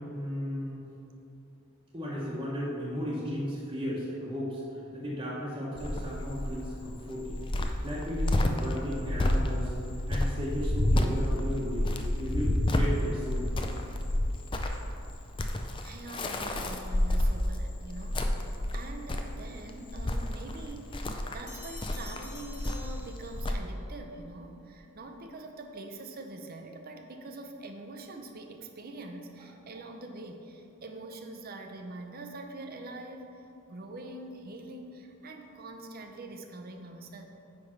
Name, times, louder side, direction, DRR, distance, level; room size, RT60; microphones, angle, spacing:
voice 1, 0.1-0.8 1.9-4.6 4.9-7.4 7.8-9.7 10.1-11.9 12.2-13.5, equal, 20° right, -8 dB, 1.1 m, -35 dB
Cricket, 5.8-23.5, left 1 dB, 25° left, 0.4 m, -30 dB
voice 2, 15.8-33.3 33.7-37.3, right 2 dB, 45° right, 4 dB, 0.7 m, -44 dB
sound 1, 21.5-23.7, left 3 dB, 40° left, 1.4 m, -49 dB
9.7 x 3.5 x 5.7 m, 2.8 s
head